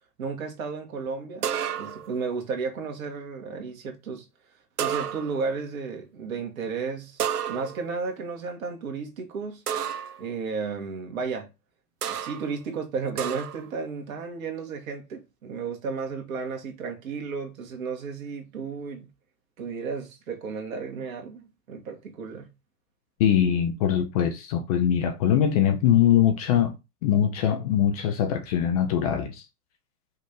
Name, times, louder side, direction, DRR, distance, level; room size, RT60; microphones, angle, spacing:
voice 1, 0.2-1.5 1.8-4.2 4.8-9.6 10.2-11.5 12.0-19.1 19.6-22.5, right 5 dB, 60° right, 1.6 m, -33 dB
sound 1, 1.4-2.2 4.8-5.5 7.2-8.0 9.7-10.2 12.0-12.5 13.2-13.7, right 9 dB, 75° right, 0.7 m, -31 dB
voice 2, 23.2-26.7 27.0-29.4, left 9 dB, 25° left, 0.5 m, -22 dB
5.4 x 2.7 x 3.6 m
hypercardioid pair, 115°, 47 cm